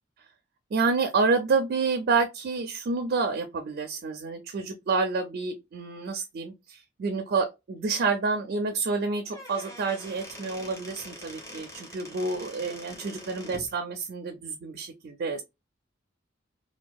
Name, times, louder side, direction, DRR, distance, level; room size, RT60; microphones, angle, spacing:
voice 1, 0.7-15.4, right 4 dB, 55° right, 0.4 m, -28 dB
Squeak / Wood, 9.1-13.7, equal, 15° left, 0.7 m, -44 dB
2.6 x 2.2 x 2.2 m
head